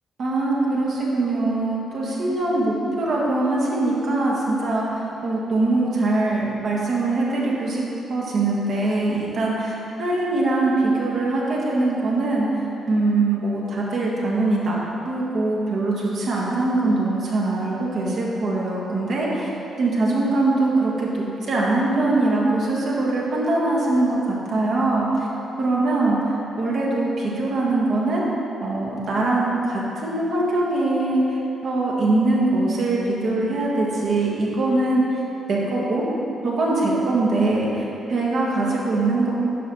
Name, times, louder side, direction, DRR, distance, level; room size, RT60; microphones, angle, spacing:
voice 1, 0.2-7.8 8.1-14.8 15.0-19.5 19.8-25.3 25.6-28.2 28.6-31.2 31.6-35.2 35.5-36.1 36.4-39.3, right 2 dB, 65° right, -4 dB, 1.6 m, -22 dB
9.0 x 6.2 x 3.1 m, 3.0 s
hypercardioid pair, 45°, 0 cm